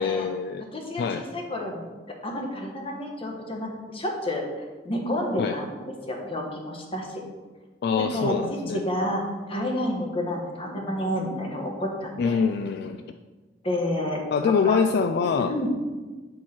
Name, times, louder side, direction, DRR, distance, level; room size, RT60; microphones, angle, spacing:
voice 1, 0.0-0.6 1.0-1.3 5.4-5.6 7.8-8.8 12.2-13.0 14.3-15.5, left 5 dB, 60° left, 8 dB, 0.3 m, -25 dB
voice 2, 0.7-1.9 2.2-4.5 4.8-7.2 8.0-8.3 8.7-12.4 13.6-14.8 15.4-15.7, left 1 dB, 30° left, 1 dB, 1.2 m, -30 dB
7.9 x 4.6 x 4.3 m, 1.3 s
head